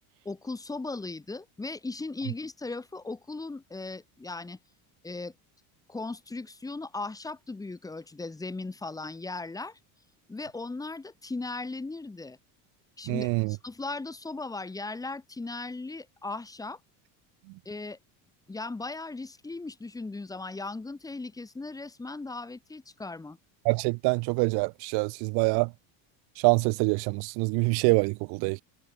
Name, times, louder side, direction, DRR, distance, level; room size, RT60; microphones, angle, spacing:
voice 1, 0.2-4.6 5.0-5.3 5.9-9.8 10.3-12.4 13.0-16.8 17.6-18.0 18.5-23.4, left 3 dB, 10° left, 1.7 m, -37 dB
voice 2, 13.1-13.5 23.6-25.7 26.4-28.6, right 31 dB, 65° right, 1.0 m, -25 dB
cardioid pair, 155°, 41 cm